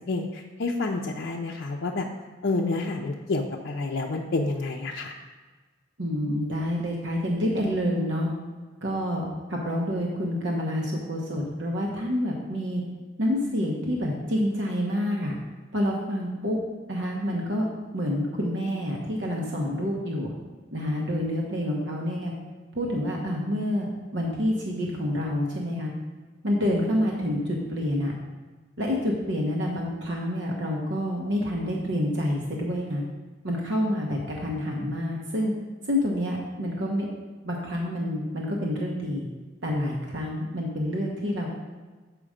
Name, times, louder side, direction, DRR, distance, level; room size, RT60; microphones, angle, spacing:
voice 1, 0.1-2.1 2.4-5.1, left 3 dB, 60° left, -1 dB, 0.5 m, -29 dB
voice 2, 6.0-8.3 8.8-12.8 13.2-15.4 15.7-16.6 16.9-17.6 17.9-20.3 20.7-22.3 22.7-25.9 26.4-28.1 28.8-33.0 33.4-35.5 35.8-37.1 37.4-39.3 39.6-41.5, equal, 65° right, -2 dB, 1.0 m, -28 dB
7.4 x 4.9 x 5.0 m, 1.3 s
head